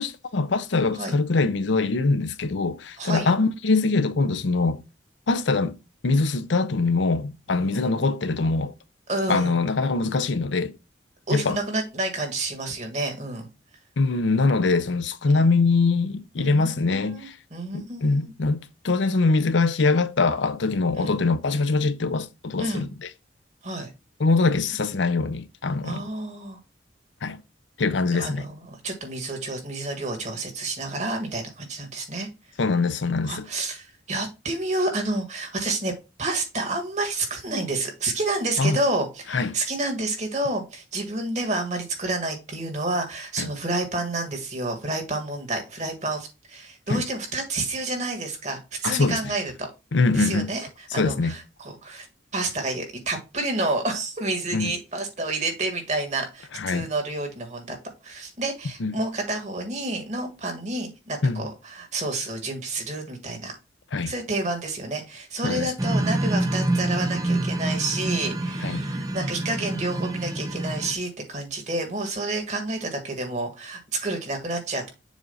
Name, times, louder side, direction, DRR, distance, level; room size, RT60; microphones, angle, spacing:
voice 1, 0.0-4.8 5.3-5.8 6.0-8.7 9.3-10.7 11.3-11.6 14.0-17.3 17.7-22.9 24.2-26.0 27.2-27.4 27.8-28.5 32.6-33.5 38.6-38.8 39.3-39.6 43.4-43.5 46.9-47.0 48.8-49.2 49.9-50.5 50.9-51.3 54.5-54.7 56.5-56.9 58.8-58.9 61.2-61.5 63.9-64.1 65.4-65.7 68.6-68.8, left 3 dB, 80° left, 0.6 m, -23 dB
voice 2, 3.0-3.3 7.5-7.9 9.1-9.6 11.3-13.5 15.3-15.4 16.4-18.3 20.9-21.1 22.6-22.8 23.6-23.9 25.8-26.6 28.1-32.3 33.2-35.9 36.2-49.7 50.1-52.1 52.3-57.8 58.0-63.6 64.1-74.9, right 2 dB, 40° right, 1.9 m, -29 dB
sound 1, 65.8-70.9, right 1 dB, 20° right, 0.5 m, -27 dB
7.1 x 2.6 x 5.4 m
head